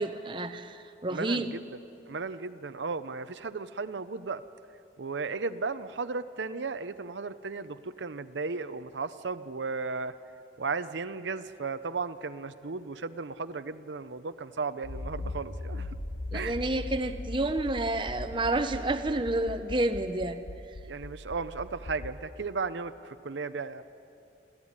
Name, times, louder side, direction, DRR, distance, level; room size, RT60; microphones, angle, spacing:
voice 1, 0.0-1.5 16.3-20.4, right 2 dB, 25° right, 8 dB, 0.8 m, -29 dB
voice 2, 1.1-1.6 2.1-4.4 5.0-10.1 10.6-15.9 16.3-16.6 20.9-23.8, right 4 dB, 85° right, 11 dB, 0.7 m, -35 dB
Accelerating revving vroom, 14.8-22.1, left 2 dB, 90° left, 1.3 m, -39 dB
26.0 x 14.5 x 9.8 m, 2.7 s
head